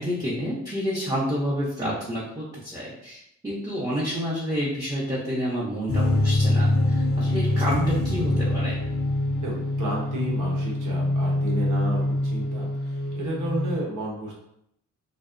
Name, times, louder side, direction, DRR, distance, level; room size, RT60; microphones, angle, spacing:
voice 1, 0.0-8.8, equal, 10° right, -8 dB, 0.6 m, -29 dB
sound 1, 5.9-13.8, left 1 dB, 45° left, 0.5 m, -24 dB
voice 2, 9.4-14.4, right 1 dB, 75° right, -3 dB, 0.9 m, -32 dB
2.6 x 2.0 x 2.4 m, 0.77 s
cardioid pair, 80°, 31 cm